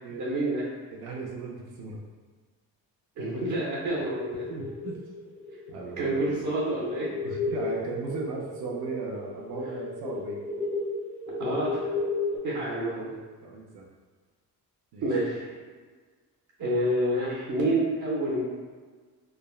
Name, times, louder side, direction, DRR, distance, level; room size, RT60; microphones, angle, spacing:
voice 1, 0.1-0.6 3.2-4.5 6.0-7.1 11.4-11.9 12.4-13.2 15.0-15.5 16.6-18.4, right 1 dB, 55° right, -5 dB, 0.8 m, -28 dB
voice 2, 0.9-2.0 4.5-4.9 5.7-6.2 7.2-10.4 12.8-13.1 13.4-13.9 14.9-15.1, right 4 dB, 85° right, -2 dB, 0.6 m, -37 dB
sound 1, 3.8-12.4, left 2 dB, 20° left, 0.7 m, -34 dB
3.4 x 2.0 x 2.2 m, 1.5 s
cardioid pair, 130°, 37 cm